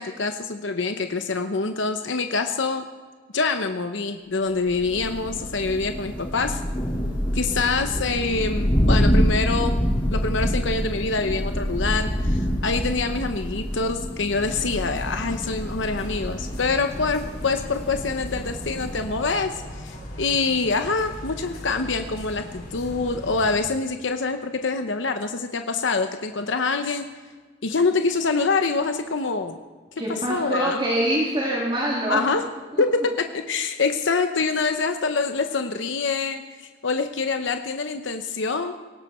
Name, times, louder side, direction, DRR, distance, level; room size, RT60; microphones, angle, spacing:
voice 1, 0.0-2.8 3.3-6.6 7.3-9.8 10.1-27.0 27.6-29.6 30.1-30.8 32.1-32.4 32.8-38.7, left 4 dB, 75° left, 7 dB, 0.9 m, -25 dB
Thunder, 4.7-19.3, equal, 25° left, 3.3 m, -26 dB
sound 1, 14.3-23.5, left 1 dB, 50° left, 3.8 m, -38 dB
voice 2, 30.0-32.3 32.7-32.8, right 1 dB, 25° right, -4 dB, 2.9 m, -24 dB
18.5 x 17.0 x 4.4 m, 1.4 s
head